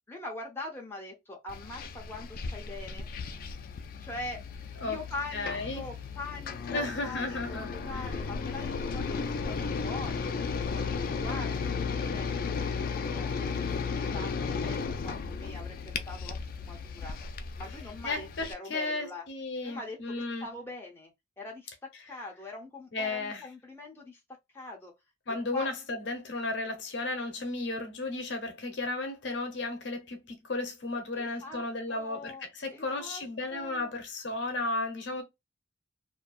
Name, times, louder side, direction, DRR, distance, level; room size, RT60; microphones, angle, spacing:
voice 1, 0.1-3.1 4.0-4.4 4.8-17.1 17.6-19.3 19.6-21.1 21.4-21.7 22.1-24.2 24.5-24.9 25.5-25.7 31.2-31.6 31.9-33.2 33.5-33.9, left 2 dB, 10° left, 0.6 m, -43 dB
sound 1, 1.5-18.5, left 5 dB, 50° left, 0.3 m, -35 dB
voice 2, 5.3-5.9 6.7-8.1 18.0-20.5 22.9-23.5 25.3-35.2, left 2 dB, 65° left, 0.8 m, -34 dB
2.6 x 2.2 x 2.2 m
head